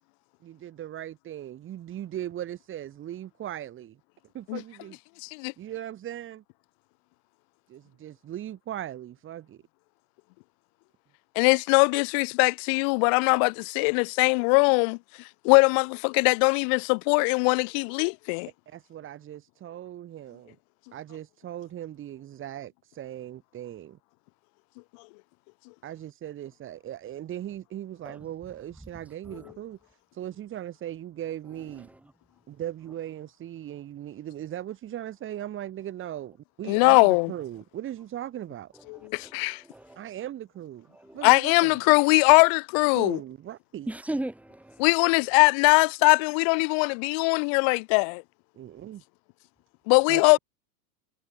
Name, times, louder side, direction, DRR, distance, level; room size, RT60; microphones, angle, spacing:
voice 1, 0.4-4.0 4.3-5.0 5.6-6.4 7.7-9.6 18.7-20.6 20.9-24.0 25.8-31.9 32.5-38.7 40.0-40.9 41.1-41.8 42.9-43.9 48.6-49.0 50.1-50.4, right 11 dB, 25° right, 5.7 m, -38 dB
voice 2, 5.2-5.5 11.4-15.0 15.4-18.5 36.7-37.3 38.9-39.6 41.2-43.2 44.8-48.2 49.9-50.4, left 38 dB, 20° left, 0.4 m, -21 dB
voice 3, 38.9-40.0 40.9-41.2 43.9-44.9, right 1 dB, 5° right, 2.7 m, -37 dB
supercardioid pair, 150°, 49 cm